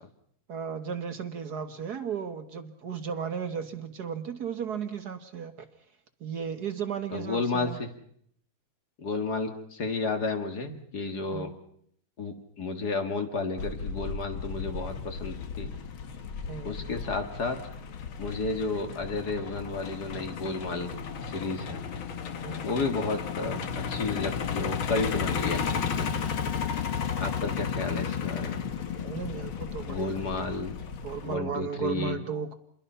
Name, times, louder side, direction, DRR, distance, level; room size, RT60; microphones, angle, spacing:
voice 1, 0.5-5.7 6.2-7.8 11.3-11.5 16.5-16.8 22.4-22.7 29.0-30.5 31.0-32.6, right 7 dB, 55° right, 9 dB, 1.7 m, -35 dB
voice 2, 7.1-7.9 9.0-11.5 12.2-15.7 16.6-17.6 18.2-20.9 21.3-21.8 22.6-26.2 27.2-28.6 29.8-30.8 31.2-32.2, left 3 dB, 50° left, 6 dB, 2.4 m, -32 dB
Truck, 13.6-31.3, left 7 dB, 80° left, 2.2 m, -34 dB
28.0 x 22.0 x 5.7 m, 0.69 s
omnidirectional pair, 2.2 m